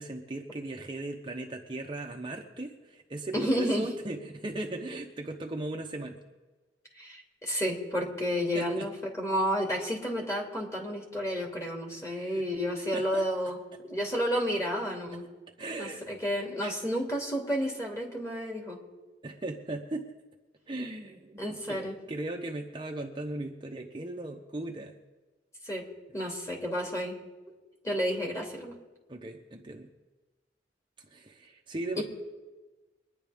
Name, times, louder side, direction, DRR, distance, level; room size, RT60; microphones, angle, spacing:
voice 1, 0.0-6.2 8.5-8.9 11.9-12.4 12.9-13.5 15.6-16.1 16.6-16.7 19.2-20.1 20.7-25.0 26.2-26.3 29.1-29.9 31.0-32.0, right 2 dB, 25° right, 1 dB, 0.9 m, -38 dB
voice 2, 3.3-3.8 7.0-8.9 9.2-13.6 13.9-15.2 15.8-18.8 21.4-21.9 25.7-25.9 26.1-27.2 27.8-28.7 32.0-32.1, equal, 15° left, 0 dB, 2.5 m, -31 dB
24.0 x 10.0 x 3.5 m, 1.2 s
head